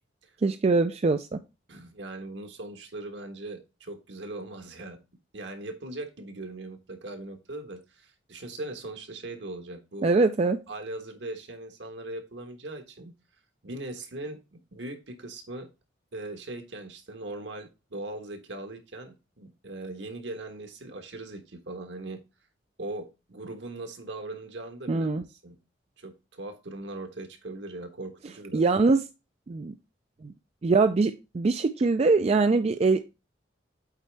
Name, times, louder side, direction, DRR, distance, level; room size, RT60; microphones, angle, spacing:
voice 1, 0.4-1.4 10.0-10.6 24.9-25.2 28.5-29.0 29.5-29.7 30.2-30.3 30.6-33.0, right 3 dB, 35° right, 9 dB, 0.3 m, -23 dB
voice 2, 1.7-5.0 5.3-10.1 10.7-13.1 13.6-15.7 16.1-22.2 22.8-25.6 26.0-28.6, right 2 dB, 70° right, 6 dB, 1.3 m, -40 dB
8.2 x 4.2 x 3.4 m, 0.27 s
head